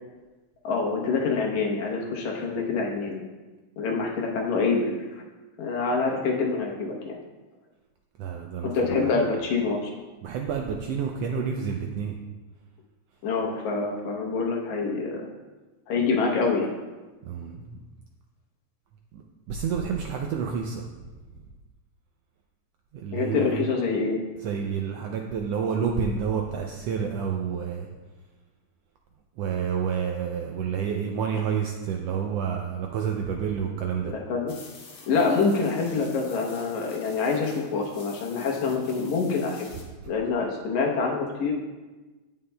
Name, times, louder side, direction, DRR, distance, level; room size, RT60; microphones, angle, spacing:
voice 1, 0.6-3.2 3.8-5.2 5.6-7.2 8.6-10.0 13.2-15.3 15.9-16.8 23.1-24.2 34.0-34.5 35.1-39.7 40.1-41.5, left 4 dB, 75° left, 0 dB, 2.4 m, -26 dB
voice 2, 8.2-9.1 10.2-12.2 17.2-17.8 19.1-19.2 19.5-20.9 22.9-23.7 24.4-27.9 29.4-34.1, right 7 dB, 80° right, 2 dB, 1.5 m, -29 dB
sound 1, 34.5-39.8, left 4 dB, 60° left, 1.9 m, -48 dB
16.5 x 5.5 x 2.2 m, 1.2 s
omnidirectional pair, 3.3 m